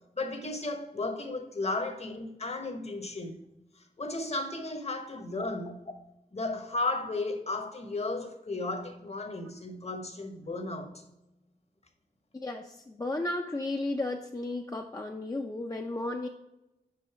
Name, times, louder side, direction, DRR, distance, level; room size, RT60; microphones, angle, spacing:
voice 1, 0.2-3.4 3.8-5.9 6.3-10.9, left 2 dB, 45° left, 1.0 m, -34 dB
voice 2, 12.3-16.3, left 2 dB, 25° left, 0.4 m, -34 dB
5.2 x 5.1 x 4.6 m
wide cardioid pair, 80°, 16 cm